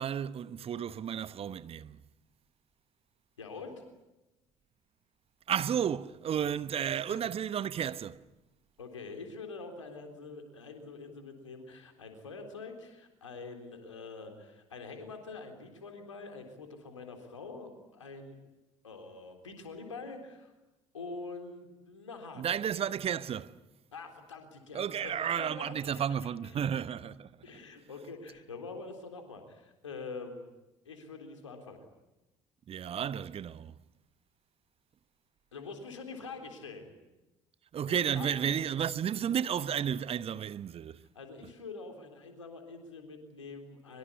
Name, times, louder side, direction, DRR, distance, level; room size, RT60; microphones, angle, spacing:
voice 1, 0.0-2.0 5.5-8.2 22.4-23.6 24.7-27.4 32.7-33.8 37.7-41.1, right 8 dB, 40° right, 1.0 m, -32 dB
voice 2, 3.4-3.8 6.8-7.2 8.8-18.4 18.8-20.5 20.9-22.6 23.9-26.0 27.4-30.5 30.9-31.8 35.5-36.9 37.8-38.3 41.1-44.0, left 4 dB, 80° left, 3.8 m, -45 dB
24.0 x 23.5 x 9.9 m
figure-of-eight pair, 55°, 16 cm